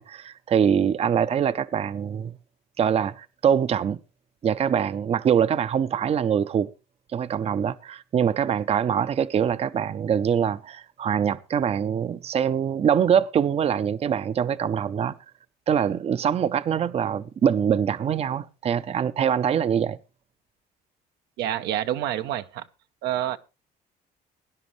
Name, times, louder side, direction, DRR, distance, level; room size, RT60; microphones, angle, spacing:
voice 1, 0.0-2.4 2.8-4.0 4.4-6.7 7.1-15.2 15.7-20.0, right 8 dB, 35° right, 0.6 m, -24 dB
voice 2, 21.4-22.6 23.0-23.4, right 12 dB, 85° right, 0.8 m, -27 dB
18.0 x 10.5 x 3.1 m
cardioid pair, 110°, 17 cm